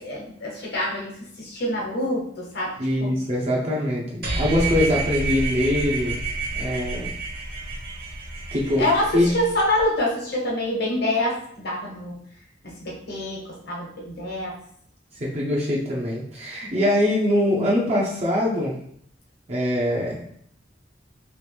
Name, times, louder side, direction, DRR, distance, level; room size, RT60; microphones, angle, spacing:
voice 1, 0.0-3.1 8.8-12.1 12.6-14.6, left 1 dB, 60° left, -3 dB, 1.1 m, -26 dB
voice 2, 2.8-6.2 6.6-7.1 8.5-8.8 9.1-9.3 15.2-18.8 19.5-20.2, left 1 dB, 35° right, -4 dB, 0.6 m, -23 dB
sound 1, 4.2-9.8, right 3 dB, 55° right, 1.2 m, -29 dB
3.1 x 2.9 x 3.3 m, 0.67 s
head